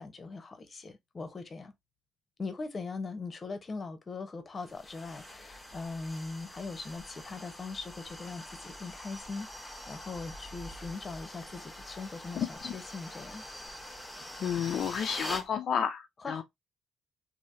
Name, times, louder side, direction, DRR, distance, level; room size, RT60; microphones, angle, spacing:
voice 1, 0.0-1.7 2.4-13.4 16.2-16.4, left 3 dB, 35° left, 0.8 m, -40 dB
sound 1, 4.6-15.5, left 1 dB, 5° left, 1.1 m, -45 dB
voice 2, 12.4-12.7 14.4-16.4, left 8 dB, 65° left, 0.4 m, -31 dB
3.2 x 2.7 x 2.6 m
cardioid pair, 90°, 0 cm